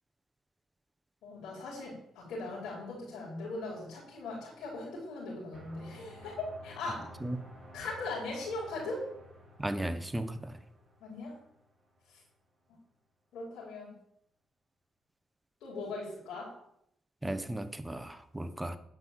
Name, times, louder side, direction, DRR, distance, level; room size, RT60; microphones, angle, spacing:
voice 1, 1.2-7.1 7.7-9.0 11.0-11.4 12.1-12.2 13.3-13.9 15.6-16.5, left 2 dB, 80° left, 5.1 m, -39 dB
sound 1, 5.5-12.2, equal, 25° right, 4.6 m, -53 dB
voice 2, 9.6-10.6 17.2-18.8, right 1 dB, 10° right, 1.0 m, -35 dB
10.5 x 5.6 x 8.1 m
cardioid pair, 90°, 0 cm